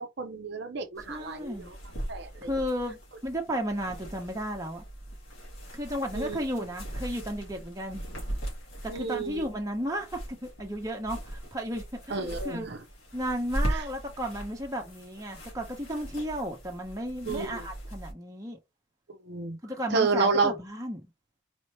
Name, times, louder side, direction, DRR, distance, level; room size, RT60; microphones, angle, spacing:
voice 1, 0.2-1.7 2.1-2.5 6.1-6.4 8.9-9.5 12.1-12.8 13.7-13.8 17.3-17.6 19.3-19.6 19.9-20.5, right 4 dB, 55° right, 0.7 m, -30 dB
sound 1, 1.0-18.1, right 1 dB, 85° left, 2.3 m, -39 dB
voice 2, 1.1-1.7 2.4-4.8 5.7-8.0 8.8-12.7 13.1-18.6 19.6-21.1, equal, 15° right, 0.9 m, -34 dB
4.4 x 2.9 x 3.1 m
head